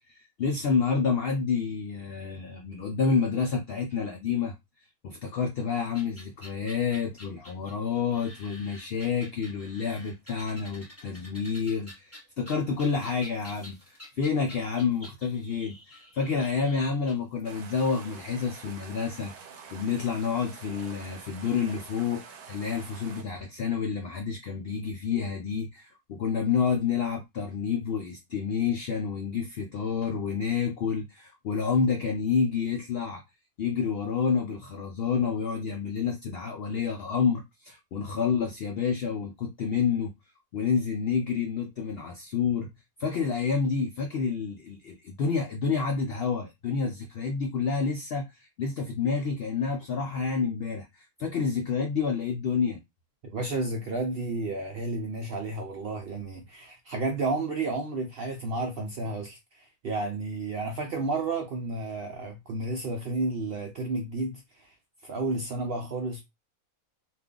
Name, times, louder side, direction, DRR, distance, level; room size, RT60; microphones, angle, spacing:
voice 1, 0.1-4.5 5.0-19.3 19.7-33.2 33.6-40.1 40.5-42.7 43.0-52.8, left 5 dB, 70° left, 0.5 m, -29 dB
sound 1, 5.9-17.8, left 1 dB, 10° left, 1.0 m, -49 dB
sound 2, 17.4-23.2, right 6 dB, 90° right, 1.1 m, -47 dB
voice 2, 53.3-64.7 65.0-66.2, right 2 dB, 65° right, 0.6 m, -32 dB
2.4 x 2.4 x 3.6 m
omnidirectional pair, 1.5 m